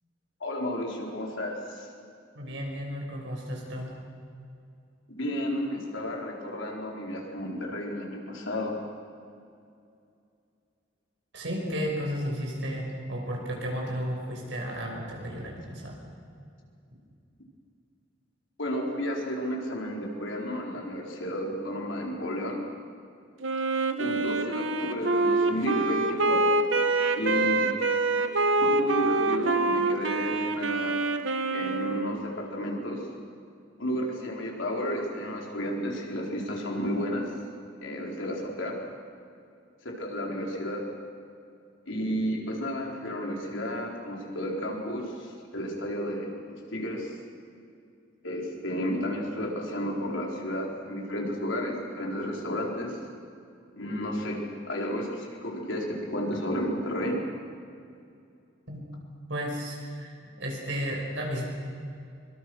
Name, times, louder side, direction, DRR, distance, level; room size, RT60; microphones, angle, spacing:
voice 1, 0.4-1.9 5.1-8.8 18.6-22.6 24.0-26.7 27.1-27.7 28.6-31.0 31.5-33.1 33.8-37.2 37.8-38.7 39.8-40.8 41.9-47.1 48.2-53.0 53.7-54.4 54.7-57.2, equal, 75° left, 0 dB, 4.5 m, -32 dB
voice 2, 2.3-4.0 11.3-16.0 58.7-58.8 59.3-61.4, equal, 65° right, -1 dB, 6.5 m, -33 dB
Wind instrument woodwind instrument, 23.4-32.3, right 2 dB, 85° right, 1.4 m, -26 dB
24.0 x 23.5 x 6.4 m, 2.4 s
head